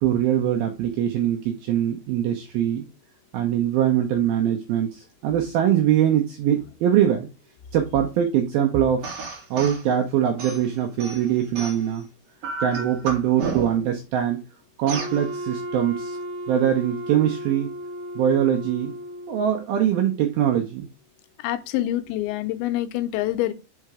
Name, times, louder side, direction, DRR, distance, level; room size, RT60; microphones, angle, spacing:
voice 1, 0.0-2.8 3.3-7.3 7.7-9.1 9.5-12.1 12.6-14.4 14.8-16.2 16.5-17.7 18.2-18.9 19.3-20.9, right 10 dB, 80° right, 2.1 m, -22 dB
sound 1, 9.0-9.8 10.4-12.0 12.4-13.9 14.9-15.2, right 4 dB, 60° right, 1.7 m, -32 dB
Wind instrument woodwind instrument, 14.9-19.6, equal, 30° left, 0.9 m, -34 dB
voice 2, 21.4-23.5, left 14 dB, 85° left, 3.0 m, -26 dB
5.6 x 5.1 x 4.8 m
omnidirectional pair, 5.2 m